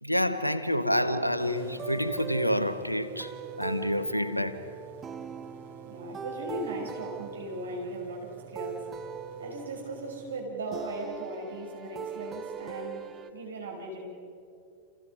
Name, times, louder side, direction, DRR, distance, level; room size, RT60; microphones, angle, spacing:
voice 1, 0.0-3.3 3.6-4.6, equal, 90° left, 1.1 m, -28 dB
sound 1, 1.0-13.3, right 6 dB, 20° right, 1.4 m, -41 dB
sound 2, 1.4-10.4, right 7 dB, 50° right, 1.8 m, -50 dB
voice 2, 5.8-9.0 9.4-14.1, right 2 dB, 70° right, 5.8 m, -38 dB
29.5 x 29.0 x 5.5 m
figure-of-eight pair, 90°, 0 cm